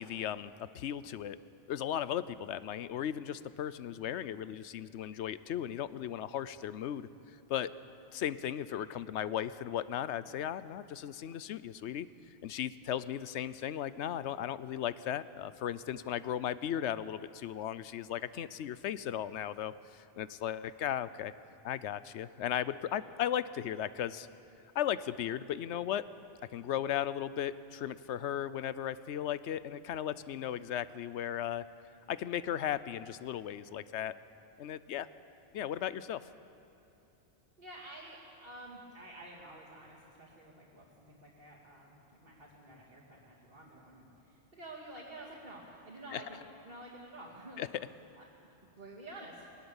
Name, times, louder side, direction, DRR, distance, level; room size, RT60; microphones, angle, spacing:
voice 1, 0.0-1.4 1.7-7.1 7.5-7.7 8.1-12.1 12.4-21.3 21.6-24.3 24.7-26.1 26.5-31.7 32.1-34.1 34.6-35.1 35.5-36.2 46.1-46.2 47.6-47.7, left 10 dB, 75° left, 15 dB, 0.9 m, -36 dB
voice 2, 37.6-46.4 46.7-47.7 48.1-48.2 48.6-49.4, right 1 dB, 40° right, -8 dB, 2.8 m, -50 dB
20.5 x 19.0 x 7.2 m, 2.8 s
omnidirectional pair, 1.2 m